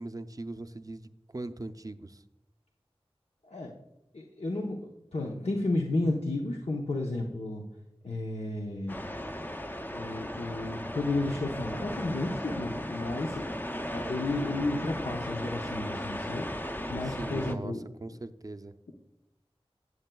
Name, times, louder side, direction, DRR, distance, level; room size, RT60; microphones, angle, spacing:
voice 1, 0.0-2.2 17.0-17.7 18.0-18.7, right 2 dB, 35° right, 10 dB, 0.5 m, -40 dB
voice 2, 4.1-7.6 8.0-9.0 9.9-13.5 13.9-17.8 18.1-18.2, left 2 dB, 85° left, 0 dB, 0.8 m, -32 dB
sound 1, 8.9-17.6, left 1 dB, 20° left, 0.5 m, -36 dB
13.5 x 7.9 x 2.3 m, 0.88 s
wide cardioid pair, 50°, 10 cm